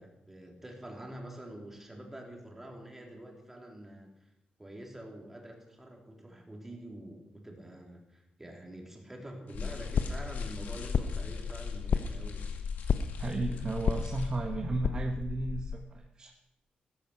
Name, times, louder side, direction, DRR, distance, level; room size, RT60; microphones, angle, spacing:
voice 1, 0.0-4.1 4.6-12.5, right 1 dB, 10° right, 0 dB, 3.5 m, -46 dB
sound 1, 9.5-14.5, left 6 dB, 75° left, 2.2 m, -52 dB
sound 2, 9.5-15.8, left 6 dB, 55° left, 0.8 m, -33 dB
voice 2, 13.2-16.3, right 3 dB, 30° right, 3 dB, 1.2 m, -34 dB
15.5 x 14.5 x 5.9 m, 0.84 s
wide cardioid pair, 145°, 3 cm